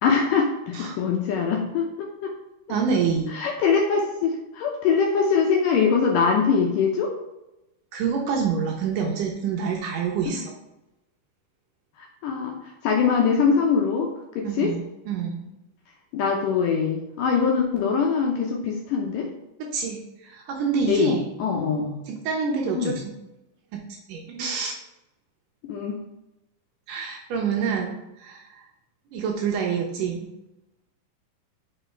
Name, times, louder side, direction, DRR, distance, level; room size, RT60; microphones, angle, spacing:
voice 1, 0.0-2.3 3.3-7.1 12.2-12.6 12.8-14.1 14.4-14.7 16.1-19.3 20.9-22.0 22.8-22.9 25.7-26.0, left 5 dB, 75° left, 1 dB, 2.1 m, -23 dB
voice 2, 2.7-3.3 7.9-10.5 14.4-15.4 19.7-21.3 22.1-23.0 23.7-23.8 24.1-24.7 26.9-28.6 29.1-30.3, right 6 dB, 75° right, 1 dB, 2.1 m, -27 dB
5.5 x 4.1 x 4.5 m, 0.92 s
omnidirectional pair, 4.4 m